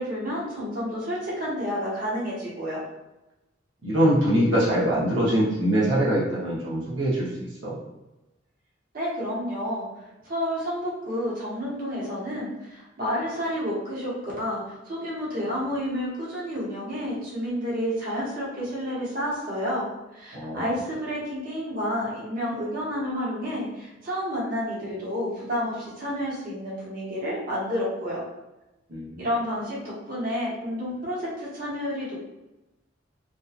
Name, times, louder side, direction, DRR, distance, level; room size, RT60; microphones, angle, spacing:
voice 1, 0.0-2.8 8.9-9.9 10.2-19.9 20.1-28.2 29.2-32.1, equal, 50° right, -6 dB, 0.8 m, -30 dB
voice 2, 3.8-7.8 20.3-20.7 28.9-29.3, right 1 dB, 75° right, -6 dB, 0.7 m, -23 dB
2.6 x 2.2 x 2.4 m, 0.98 s
head